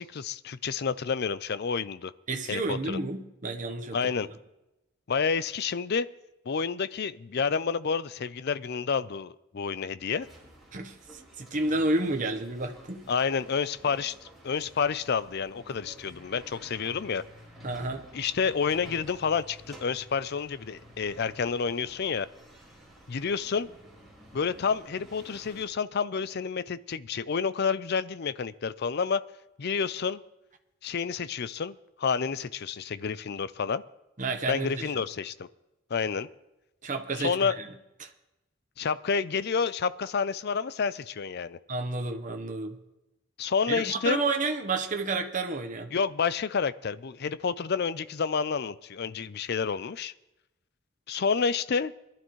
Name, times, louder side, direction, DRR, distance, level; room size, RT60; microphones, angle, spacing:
voice 1, 0.0-2.1 2.5-3.0 3.9-4.3 5.1-6.1 6.5-10.3 13.1-14.2 14.4-17.2 18.1-22.3 23.1-23.7 24.3-29.2 29.6-30.2 30.8-33.8 34.5-35.5 35.9-36.3 37.2-37.6 38.8-41.6 43.4-44.2 45.9-50.1 51.1-51.9, left 5 dB, 50° left, 16 dB, 0.5 m, -29 dB
voice 2, 2.3-4.0 10.7-13.1 17.6-18.1 34.2-34.9 36.8-37.7 38.0-38.1 41.7-42.8 43.7-45.9, right 2 dB, 40° right, 4 dB, 1.1 m, -30 dB
sound 1, 10.2-25.7, equal, ahead, 4.7 m, -51 dB
22.5 x 11.5 x 3.2 m, 0.95 s
head